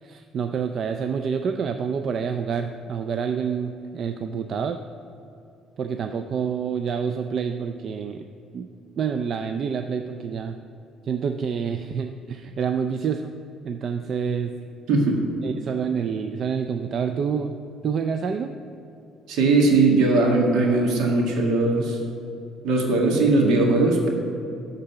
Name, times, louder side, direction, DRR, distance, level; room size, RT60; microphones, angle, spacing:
voice 1, 0.0-4.8 5.8-8.3 8.5-8.7 9.0-10.6 11.0-13.3 13.6-14.6 15.4-18.5, right 6 dB, 50° right, 7 dB, 0.4 m, -27 dB
voice 2, 14.9-15.2 19.3-22.0 22.6-24.1, right 3 dB, 75° right, 0 dB, 1.9 m, -19 dB
11.5 x 4.0 x 7.0 m, 2.7 s
cardioid pair, 105°, 0 cm